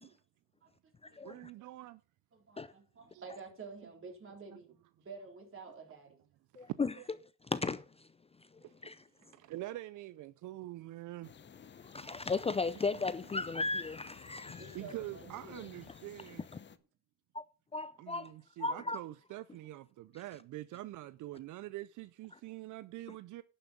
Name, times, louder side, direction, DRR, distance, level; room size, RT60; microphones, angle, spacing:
voice 1, 1.2-2.0 3.1-3.2 4.5-4.6 6.5-7.1 8.6-8.7 9.2-11.3 14.7-16.4 18.0-23.4, right 16 dB, 80° right, 0.5 m, -45 dB
voice 2, 2.3-6.2 14.4-15.7 22.4-22.5, right 4 dB, 45° right, 4.0 m, -50 dB
voice 3, 6.6-6.9 7.5-7.8 8.8-9.0 11.8-14.7 17.3-17.4 17.7-18.3 18.6-19.0, left 3 dB, 20° left, 0.5 m, -35 dB
sound 1, 11.2-16.8, left 7 dB, 35° left, 0.9 m, -53 dB
11.0 x 7.1 x 5.5 m
cardioid pair, 90°, 30 cm